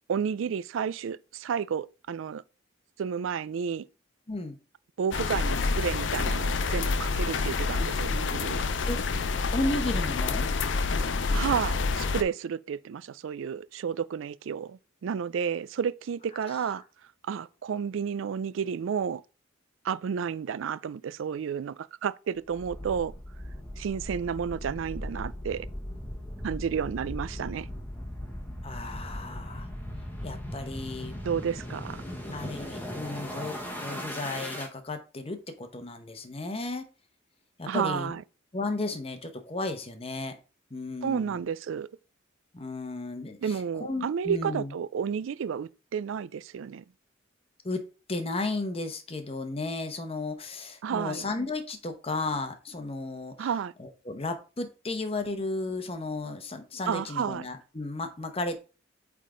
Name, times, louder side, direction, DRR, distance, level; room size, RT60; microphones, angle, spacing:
voice 1, 0.1-2.4 3.0-3.9 5.0-8.7 11.3-16.8 17.2-19.2 19.8-23.1 23.8-25.7 26.4-27.7 31.2-32.0 37.7-38.2 41.0-41.9 43.4-46.8 50.8-51.3 53.4-53.7 56.9-57.5, right 7 dB, 75° right, 0.3 m, -31 dB
sound 1, 5.1-12.2, left 4 dB, 65° left, 0.5 m, -28 dB
voice 2, 9.5-10.4 28.6-29.7 30.2-31.2 32.3-36.9 37.6-38.2 38.5-40.4 40.7-41.4 42.5-43.5 43.8-44.7 47.6-47.8 48.1-53.5 53.8-58.6, left 2 dB, 30° left, 0.9 m, -34 dB
Long Panned Riser, 22.5-34.7, equal, 10° left, 1.2 m, -38 dB
8.3 x 3.6 x 3.8 m
head